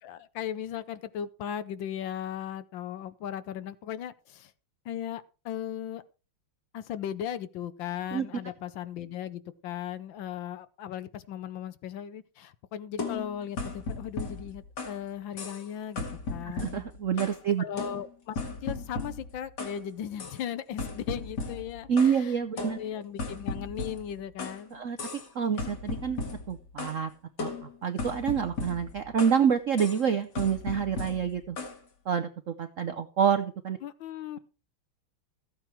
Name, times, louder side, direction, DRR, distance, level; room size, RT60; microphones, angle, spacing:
voice 1, 0.0-4.5 4.8-6.0 6.7-16.8 17.6-24.8 33.8-34.4, left 9 dB, 70° left, 1.4 m, -37 dB
sound 1, 13.0-15.0 15.4-15.7 16.0-17.4 17.8-19.8 20.2-20.4 20.8-22.2 22.6-24.6 25.0-25.3 25.6-27.0 27.4-29.4 29.8-30.0 30.4-31.8, left 3 dB, 55° left, 2.4 m, -37 dB
voice 2, 16.4-17.6 21.9-22.8 24.7-25.0 25.3-26.2 26.5-27.1 27.4-27.5 27.8-31.6 32.1-33.8, right 7 dB, 65° right, 0.7 m, -27 dB
14.5 x 8.8 x 4.5 m
omnidirectional pair, 2.3 m